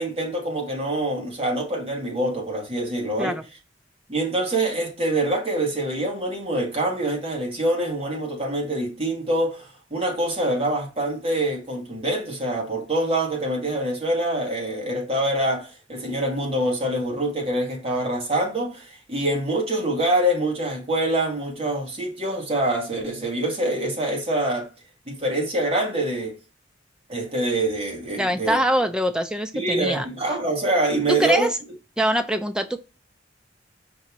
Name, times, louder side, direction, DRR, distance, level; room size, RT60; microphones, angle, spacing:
voice 1, 0.0-3.4 4.1-24.7 25.1-26.3 27.1-28.6 29.5-31.5, right 1 dB, 30° right, 1.4 m, -25 dB
voice 2, 28.2-30.1 31.1-31.6 32.0-32.8, right 1 dB, 5° right, 0.4 m, -23 dB
5.2 x 2.7 x 3.0 m
head